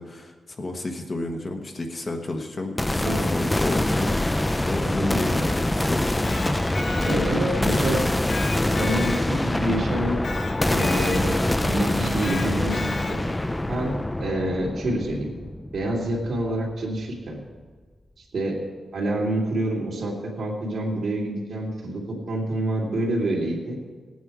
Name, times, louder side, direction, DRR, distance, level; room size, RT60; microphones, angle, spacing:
voice 1, 0.0-6.2 7.0-7.9, left 2 dB, 30° left, 3 dB, 1.2 m, -32 dB
sound 1, 2.8-16.7, left 1 dB, 10° left, 0.4 m, -25 dB
voice 2, 4.8-5.3 7.0-8.1 8.7-10.2 10.7-13.3 13.7-15.3 15.7-17.4 18.3-18.6 18.9-23.8, right 1 dB, 65° right, -2 dB, 2.9 m, -27 dB
Electric guitar, 6.1-7.6 8.3-9.7 10.2-11.5 12.2-13.5, left 3 dB, 60° left, 1.4 m, -35 dB
18.0 x 9.3 x 4.8 m, 1.5 s
wide cardioid pair, 170°, 0 cm